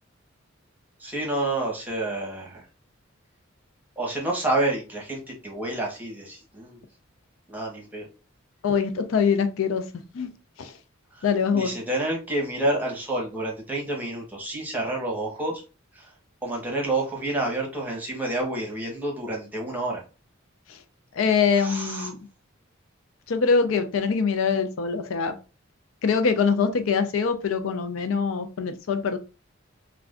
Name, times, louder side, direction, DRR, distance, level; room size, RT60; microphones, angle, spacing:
voice 1, 1.0-2.6 4.0-6.8 7.5-8.1 11.2-11.3 11.5-15.6 15.9-16.1 16.4-20.0 21.6-22.1, right 2 dB, 10° right, 1.0 m, -29 dB
voice 2, 8.6-9.9 10.1-10.3 10.6-10.7 11.2-11.7 20.7-20.8 21.1-22.2 23.3-25.3 26.0-29.2, left 5 dB, 75° left, 0.4 m, -23 dB
2.5 x 2.2 x 3.5 m
head